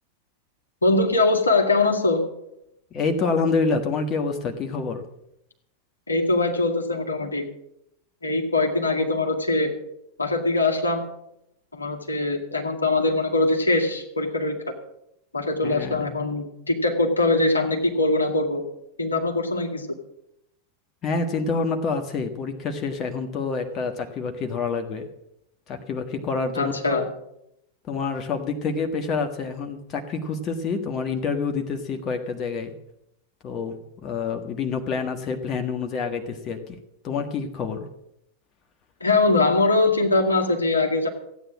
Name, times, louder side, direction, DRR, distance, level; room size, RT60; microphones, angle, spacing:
voice 1, 0.8-2.2 6.1-7.4 8.2-9.7 10.2-11.1 11.7-14.6 15.3-18.6 19.0-19.9 26.6-27.1 39.0-41.1, left 2 dB, 80° left, 3 dB, 2.0 m, -22 dB
voice 2, 2.9-5.0 15.6-16.1 21.0-25.1 25.7-27.0 27.9-32.7 33.4-36.8 37.0-37.9, left 4 dB, 30° left, 5 dB, 1.5 m, -27 dB
15.0 x 9.2 x 7.5 m, 0.79 s
figure-of-eight pair, 90°, 0 cm